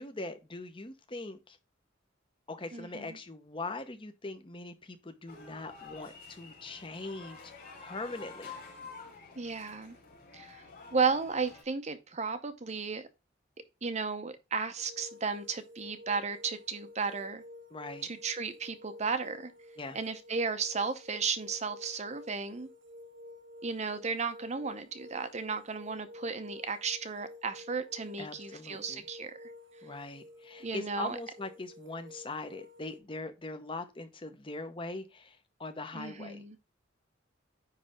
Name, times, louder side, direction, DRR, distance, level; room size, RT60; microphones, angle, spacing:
voice 1, 0.0-1.6 2.5-7.4 7.8-8.5 17.7-18.1 19.8-20.0 28.2-29.0 29.8-36.6, left 2 dB, 25° left, 0.9 m, -41 dB
voice 2, 2.7-3.2 9.4-10.0 10.3-10.6 10.9-13.1 13.8-17.4 18.1-19.5 19.9-22.7 23.6-29.4 30.6-31.2 35.9-36.6, right 5 dB, 35° right, 0.7 m, -34 dB
sound 1, 5.3-11.6, left 4 dB, 45° left, 3.6 m, -49 dB
sound 2, 14.8-33.0, left 1 dB, 65° right, 1.2 m, -51 dB
9.7 x 3.3 x 5.0 m
head